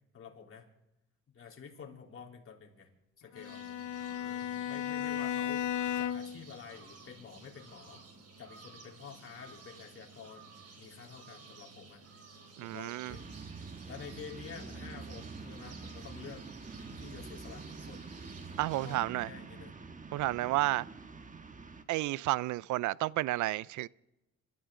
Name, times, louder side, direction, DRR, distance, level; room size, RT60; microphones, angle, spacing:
voice 1, 0.1-0.7 1.3-2.9 3.2-3.6 4.2-8.0 8.4-10.5 10.8-12.1 12.6-16.5 16.7-18.0 18.7-19.7 20.4-20.5, left 6 dB, 45° left, 3.6 m, -49 dB
Bowed string instrument, 3.3-6.5, left 10 dB, 75° left, 0.6 m, -35 dB
sound 1, 3.4-19.0, right 4 dB, 55° right, 3.5 m, -54 dB
voice 2, 12.6-13.2 18.6-19.3 20.1-20.9 21.9-23.9, right 17 dB, 75° right, 0.5 m, -31 dB
sound 2, 13.1-21.8, right 4 dB, 25° right, 1.3 m, -46 dB
27.5 x 13.5 x 3.8 m
cardioid pair, 90°, 30 cm